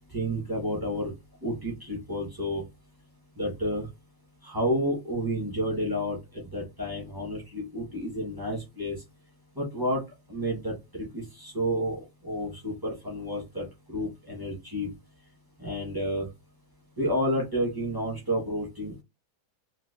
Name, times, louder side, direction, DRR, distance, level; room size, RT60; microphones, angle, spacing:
voice 1, 0.1-1.1 1.4-2.6 3.4-3.9 4.4-9.0 9.6-10.0 10.3-14.9 15.6-16.3 17.0-19.0, equal, 30° right, -3 dB, 0.4 m, -30 dB
4.0 x 2.4 x 2.3 m, 0.24 s
omnidirectional pair, 2.2 m